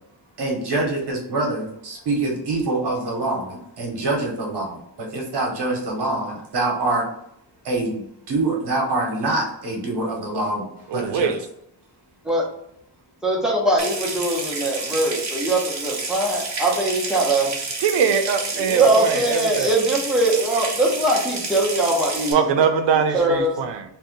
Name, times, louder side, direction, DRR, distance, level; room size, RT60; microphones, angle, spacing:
voice 1, 0.4-7.0 7.6-11.3, right 2 dB, 70° right, -1 dB, 0.9 m, -25 dB
voice 2, 10.9-11.4 17.8-19.7 22.3-23.8, right 6 dB, 85° right, 7 dB, 0.5 m, -21 dB
voice 3, 13.2-17.6 18.5-22.6 23.1-23.6, right 2 dB, ahead, -3 dB, 0.6 m, -21 dB
Water tap faucet / Sink (filling or washing) / Trickle dribble, 13.8-22.3, right 3 dB, 40° right, 0.6 m, -30 dB
2.6 x 2.2 x 3.8 m, 0.74 s
wide cardioid pair, 175°, 42 cm